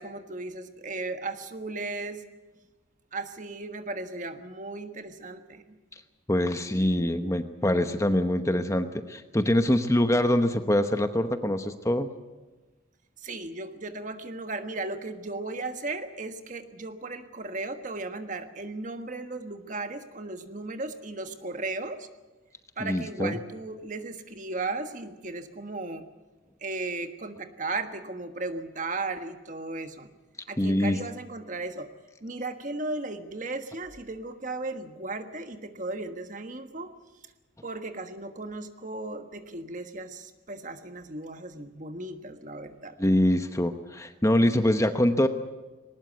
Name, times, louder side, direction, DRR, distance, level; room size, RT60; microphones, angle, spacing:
voice 1, 0.0-2.2 3.1-5.8 13.2-22.1 22.8-26.1 26.6-30.1 30.5-31.9 32.2-36.9 37.6-43.0, right 2 dB, 40° right, 8 dB, 1.4 m, -36 dB
voice 2, 6.3-12.1 22.8-23.3 30.6-31.0 43.0-45.3, left 1 dB, 15° left, 8 dB, 0.9 m, -24 dB
20.5 x 19.0 x 8.1 m, 1.2 s
head